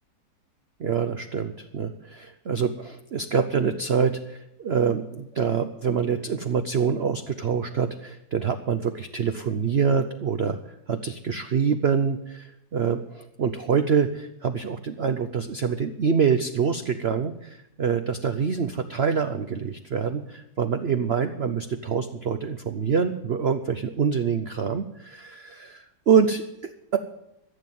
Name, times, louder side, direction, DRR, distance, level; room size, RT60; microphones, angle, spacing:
voice 1, 0.8-10.6 10.9-27.0, right 6 dB, 60° right, 8 dB, 0.7 m, -25 dB
15.0 x 7.4 x 9.2 m, 0.87 s
omnidirectional pair, 1.9 m